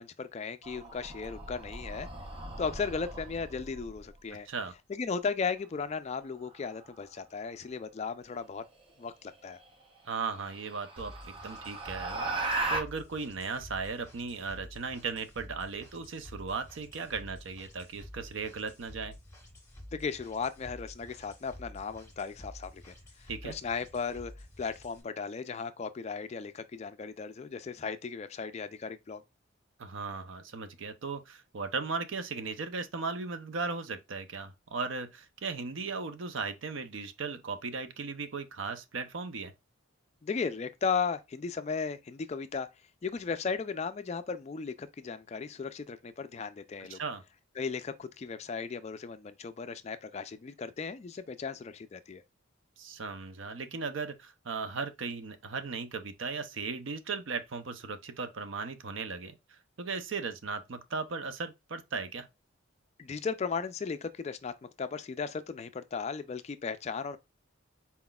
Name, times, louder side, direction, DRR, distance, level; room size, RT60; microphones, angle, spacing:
voice 1, 0.0-2.1 2.6-4.5 4.9-8.6 9.0-9.6 19.9-22.9 23.2-24.3 24.6-29.2 40.2-42.7 43.0-47.0 47.6-52.2 63.0-64.5 64.8-67.2, left 5 dB, 30° left, 0.3 m, -36 dB
sound 1, 0.6-4.1 6.5-6.9 9.0-9.1 9.6-9.7 10.2-12.8, right 2 dB, 25° right, 0.7 m, -37 dB
voice 2, 10.0-12.3 12.7-19.1 23.3-23.6 29.8-39.5 46.9-47.2 52.8-62.3, right 4 dB, 65° right, 0.6 m, -37 dB
sound 2, 11.0-25.0, left 1 dB, 15° left, 1.4 m, -50 dB
4.2 x 3.9 x 2.3 m
head